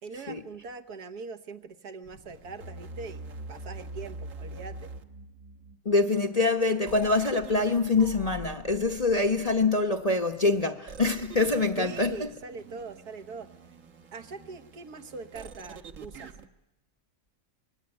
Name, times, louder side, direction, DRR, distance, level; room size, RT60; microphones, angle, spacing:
voice 1, 0.0-4.9 11.8-13.5 14.1-16.3, right 4 dB, 70° right, 1.8 m, -42 dB
sound 1, 2.0-5.8 6.9-9.9 10.9-16.5, right 3 dB, 55° right, 1.6 m, -44 dB
voice 2, 5.8-12.3, left 3 dB, 30° left, 0.9 m, -25 dB
25.5 x 22.0 x 9.8 m
omnidirectional pair, 1.7 m